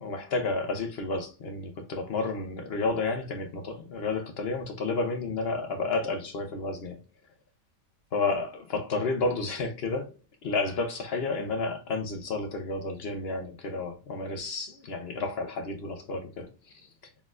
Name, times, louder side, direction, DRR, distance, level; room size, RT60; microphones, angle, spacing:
voice 1, 0.0-7.0 8.1-10.1 10.4-16.5, left 3 dB, 55° left, 0.7 m, -31 dB
4.1 x 3.5 x 2.4 m
omnidirectional pair, 1.8 m